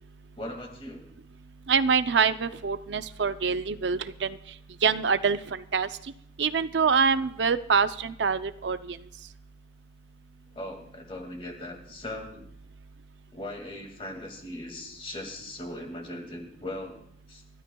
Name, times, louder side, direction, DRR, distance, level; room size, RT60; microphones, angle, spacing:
voice 1, 0.4-1.1 10.5-12.5 13.3-17.0 17.3-17.4, left 1 dB, 30° left, 3 dB, 2.2 m, -39 dB
voice 2, 1.7-4.4 4.8-5.9 6.4-9.0, right 5 dB, 80° right, 12 dB, 0.6 m, -25 dB
25.5 x 12.5 x 2.3 m, 0.74 s
head